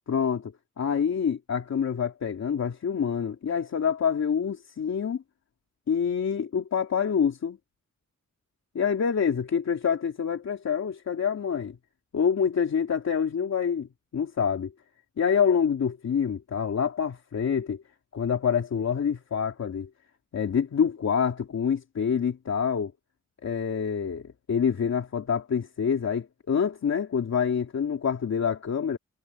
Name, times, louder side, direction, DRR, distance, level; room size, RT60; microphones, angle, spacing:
voice 1, 0.1-0.5 0.8-5.2 5.9-7.6 8.7-11.8 12.1-13.9 14.1-14.7 15.2-17.8 18.1-19.9 20.3-22.9 23.4-24.2 24.5-29.0, left 7 dB, 65° left, 2.9 m, -26 dB
wide cardioid pair, 175°, 29 cm